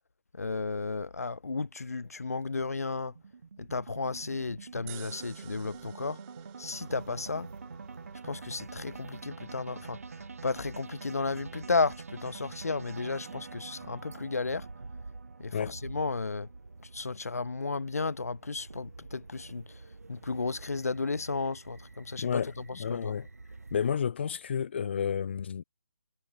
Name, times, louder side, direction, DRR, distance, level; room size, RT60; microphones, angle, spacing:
voice 1, 0.3-3.1 3.6-6.2 6.6-7.5 8.2-14.7 15.4-16.5 16.9-19.8 20.1-22.4 22.7-23.1, left 3 dB, 85° left, 0.4 m, -33 dB
sound 1, 1.5-17.9, right 5 dB, 70° right, 0.4 m, -47 dB
sound 2, 4.9-17.2, right 35 dB, 15° right, 0.5 m, -57 dB
sound 3, 6.7-24.0, right 3 dB, 90° right, 0.8 m, -49 dB
voice 2, 22.2-23.3 23.7-25.6, left 7 dB, 45° left, 0.7 m, -31 dB
figure-of-eight pair, 150°, 8 cm